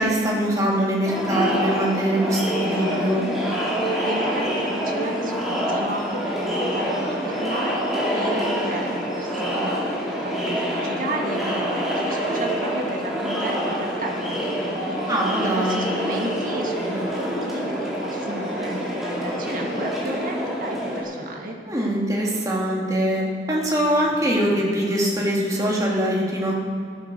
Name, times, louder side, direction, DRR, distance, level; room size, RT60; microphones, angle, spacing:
voice 1, 0.0-3.3 15.1-15.8 21.7-26.6, right 1 dB, 20° right, -3 dB, 2.5 m, -23 dB
Crowd, 1.0-21.0, equal, ahead, 3.3 m, -26 dB
voice 2, 3.7-15.1 15.6-21.6, right 1 dB, 50° right, 0 dB, 2.0 m, -33 dB
14.5 x 11.5 x 6.8 m, 2.5 s
head